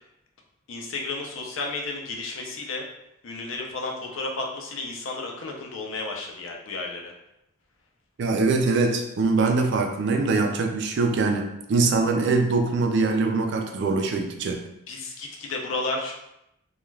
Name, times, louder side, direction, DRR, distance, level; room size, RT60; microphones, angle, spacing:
voice 1, 0.7-2.8 3.2-7.1 14.9-16.2, left 3 dB, 65° left, 1 dB, 0.5 m, -32 dB
voice 2, 8.2-14.6, right 3 dB, 55° right, 4 dB, 0.3 m, -23 dB
2.3 x 2.2 x 3.1 m, 0.84 s
head